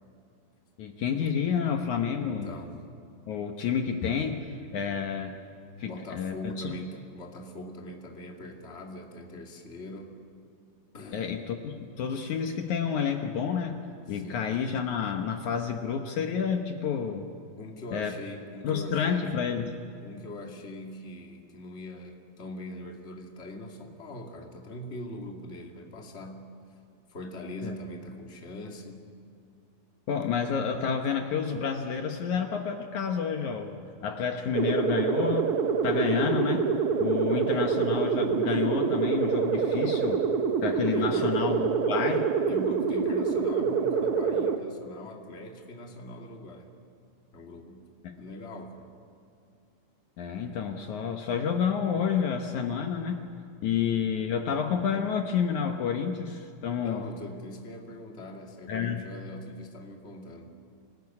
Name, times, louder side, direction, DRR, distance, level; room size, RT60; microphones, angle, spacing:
voice 1, 0.8-2.5 3.3-5.3 5.8-6.7 11.1-13.8 14.1-17.3 17.9-18.2 18.6-19.7 27.6-27.7 30.1-33.8 34.0-35.5 35.8-36.7 37.0-40.2 40.6-42.3 48.0-48.1 50.2-53.2 53.6-57.1 58.7-59.0, left 7 dB, 65° left, 4 dB, 2.4 m, -29 dB
voice 2, 2.2-2.7 5.8-10.1 10.9-11.4 14.1-14.5 17.6-19.3 20.0-26.5 27.1-29.2 40.9-41.5 42.5-46.7 47.3-47.9 48.2-48.9 56.8-60.5, left 1 dB, 20° left, 1 dB, 2.2 m, -42 dB
sound 1, 34.5-44.6, right 6 dB, 65° right, 1.4 m, -26 dB
27.0 x 20.0 x 9.7 m, 2.5 s
omnidirectional pair, 4.0 m